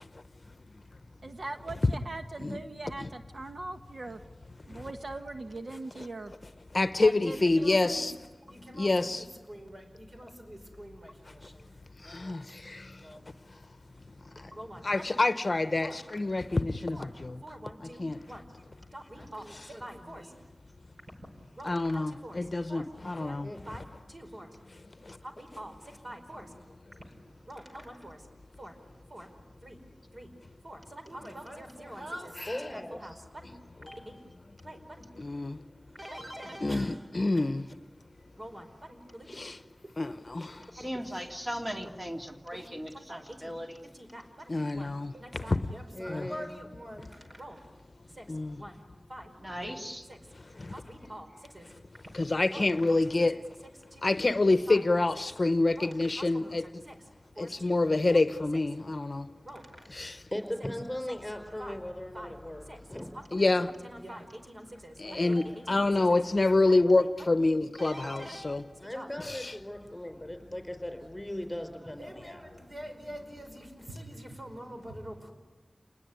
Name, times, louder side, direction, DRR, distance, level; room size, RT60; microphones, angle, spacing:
voice 1, 1.2-4.2 4.6-6.3 7.0-8.2, right 2 dB, 65° right, 1.2 m, -41 dB
voice 2, 6.7-8.1 8.7-9.2 12.0-13.1 13.5-13.7 14.3-14.5 14.8-17.4 18.0-18.2 21.6-23.5 25.0-25.2 32.4-32.6 35.2-35.6 36.6-37.7 39.3-39.6 40.0-40.7 44.5-45.6 46.1-46.3 48.3-48.6 50.6-50.7 52.1-53.4 54.0-56.6 57.4-59.3 59.9-60.2 63.3-63.7 65.0-68.6 69.2-69.5, left 2 dB, 50° left, 0.8 m, -27 dB
voice 3, 7.4-8.1 8.5-12.4 12.9-13.3 14.5-15.1 15.8-16.4 16.9-17.1 17.4-18.5 18.9-20.4 21.6-22.9 23.2-23.4 23.7-24.5 25.2-26.5 27.4-28.3 28.6-28.7 29.1-29.3 29.6-29.8 30.1-30.3 30.6-33.5 33.8-34.3 34.6-35.3 35.9-37.0 37.3-37.5 38.4-39.5 39.8-40.0 40.7-41.1 42.5-43.6 43.9-47.6 48.1-48.8 49.1-49.3 49.6-49.8 50.1-50.2 50.7-51.7 52.5-53.4 53.9-54.4 54.7-54.9 55.1-55.2 55.7-57.0 57.3-57.8 58.1-58.2 58.5-58.6 59.4-60.1 61.1-61.2 61.6-61.8 62.1-62.3 62.7-62.8 63.1-67.3 67.8-69.1 71.8-75.3, right 1 dB, 45° right, 4.9 m, -46 dB
voice 4, 32.5-33.0 45.9-46.5 59.9-63.1 65.1-65.4 68.8-72.4, left 1 dB, 15° left, 4.4 m, -38 dB
voice 5, 40.7-43.9 49.4-50.1, equal, 25° right, 2.7 m, -38 dB
28.5 x 20.5 x 9.6 m
wide cardioid pair, 70°, 0 cm